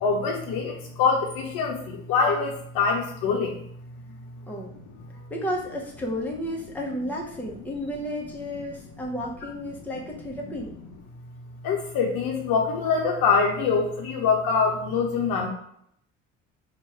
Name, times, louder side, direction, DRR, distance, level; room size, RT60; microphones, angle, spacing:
voice 1, 0.0-3.5 11.6-15.5, left 5 dB, 60° left, 1 dB, 0.7 m, -24 dB
voice 2, 4.5-4.8 5.3-10.8, equal, 5° left, -2 dB, 0.9 m, -32 dB
3.0 x 2.5 x 4.4 m, 0.70 s
hypercardioid pair, 55°, 39 cm